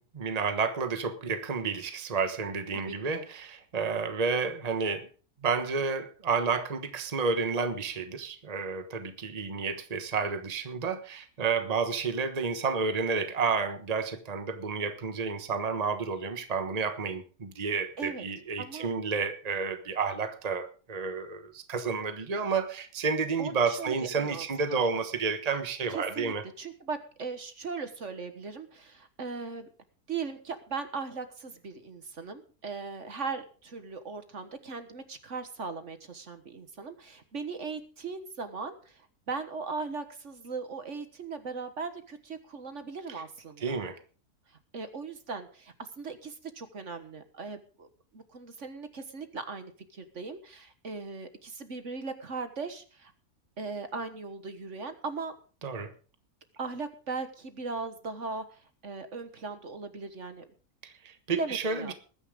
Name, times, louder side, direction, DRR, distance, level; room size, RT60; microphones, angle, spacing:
voice 1, 0.0-5.1 5.4-26.4 43.6-44.0 55.6-55.9 60.8-61.9, right 5 dB, 30° right, 8 dB, 1.3 m, -31 dB
voice 2, 2.7-3.3 18.0-18.2 18.6-18.9 23.4-24.8 25.9-29.7 30.1-43.8 44.7-47.9 48.1-53.1 53.6-55.3 56.6-60.4 61.3-61.9, right 4 dB, 55° right, 9 dB, 1.7 m, -38 dB
20.5 x 9.8 x 3.8 m, 0.39 s
omnidirectional pair, 1.6 m